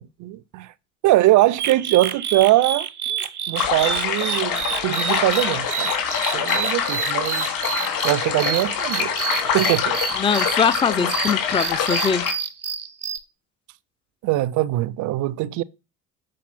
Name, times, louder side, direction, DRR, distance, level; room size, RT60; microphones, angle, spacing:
voice 1, 0.2-0.7 1.0-5.9 6.3-9.2 9.4-10.0 11.0-11.1 14.2-15.6, right 16 dB, 45° right, 0.6 m, -22 dB
sound 1, 1.6-13.2, right 8 dB, 90° right, 0.7 m, -29 dB
sound 2, 3.5-12.3, left 7 dB, 50° left, 3.3 m, -25 dB
voice 2, 10.2-12.2, left 6 dB, 10° left, 0.6 m, -22 dB
7.6 x 5.6 x 4.1 m
figure-of-eight pair, 60°, 43 cm